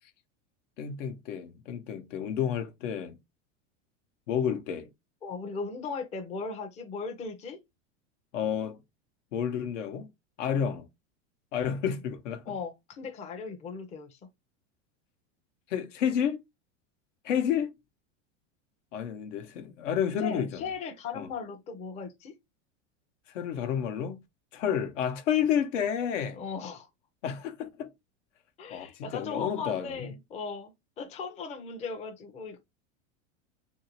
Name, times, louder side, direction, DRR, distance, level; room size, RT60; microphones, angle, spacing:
voice 1, 0.8-3.2 4.3-4.9 8.3-8.8 9.3-10.1 10.4-10.8 11.5-12.5 15.7-16.4 17.2-17.7 18.9-20.6 21.1-21.3 23.3-24.2 24.5-26.4 27.2-27.9 28.7-30.1, left 8 dB, 80° left, 0.9 m, -30 dB
voice 2, 5.2-7.6 12.5-14.2 20.2-22.3 24.6-24.8 26.3-26.9 28.6-32.6, left 5 dB, 20° left, 0.5 m, -38 dB
2.9 x 2.6 x 2.9 m
supercardioid pair, 130°, 36 cm